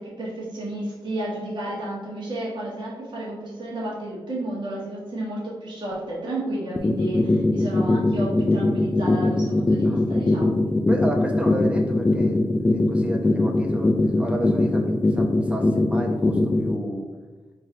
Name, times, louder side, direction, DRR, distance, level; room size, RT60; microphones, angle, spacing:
voice 1, 0.0-10.5, right 1 dB, 55° right, -7 dB, 1.2 m, -32 dB
sound 1, 6.8-16.8, left 2 dB, 20° left, 0.4 m, -20 dB
voice 2, 10.9-17.0, equal, 10° right, 1 dB, 0.8 m, -31 dB
4.0 x 2.6 x 3.7 m, 1.3 s
cardioid pair, 60°, 9 cm